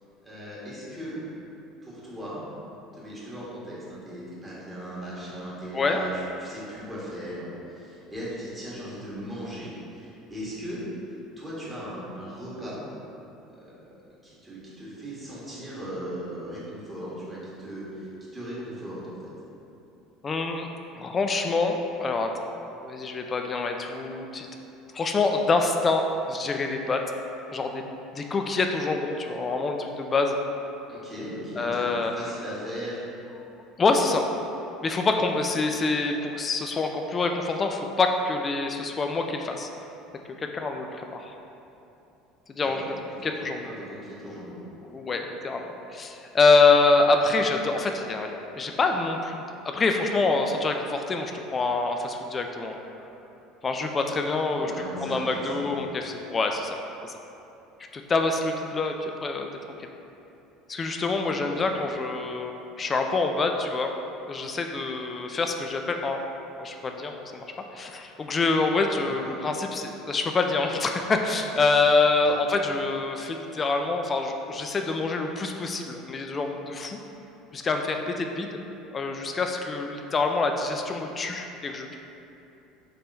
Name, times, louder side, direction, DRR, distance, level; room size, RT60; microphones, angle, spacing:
voice 1, 0.2-1.2 1.8-2.4 2.9-10.8 11.4-12.8 14.2-18.1 18.3-19.3 30.9-33.0 42.6-42.9 43.6-44.6 54.5-55.7 61.4-61.7 69.0-69.4 72.2-72.3, equal, 20° right, -8 dB, 1.5 m, -38 dB
voice 2, 20.2-20.7 21.0-24.5 24.9-27.0 27.5-27.8 28.1-30.4 31.6-32.3 33.8-34.3 34.8-39.7 40.4-41.3 42.5-42.8 43.2-43.7 44.3-44.4 44.9-52.8 53.6-54.7 55.0-57.1 57.9-59.5 59.8-59.9 60.7-63.9 64.3-66.2 66.6-67.5 67.7-77.0 77.5-78.6 78.9-82.0, left 3 dB, 30° left, 4 dB, 0.3 m, -26 dB
3.5 x 3.2 x 3.9 m, 2.9 s
figure-of-eight pair, 65°, 0 cm